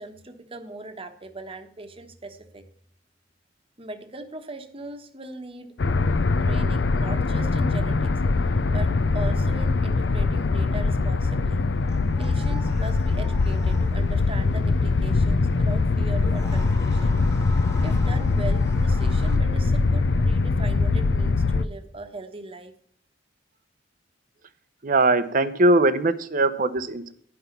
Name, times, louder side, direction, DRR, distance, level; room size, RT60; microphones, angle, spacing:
voice 1, 0.0-2.7 3.8-5.8 6.4-11.7 12.2-17.2 17.8-22.7, right 2 dB, 30° right, 8 dB, 1.2 m, -39 dB
sound 1, 5.8-21.7, left 3 dB, 70° left, 0.5 m, -22 dB
sound 2, 11.9-14.3 16.1-19.4, equal, 15° left, 1.7 m, -43 dB
voice 2, 24.8-27.1, right 2 dB, 50° right, 12 dB, 0.8 m, -21 dB
11.0 x 5.9 x 7.1 m, 0.64 s
head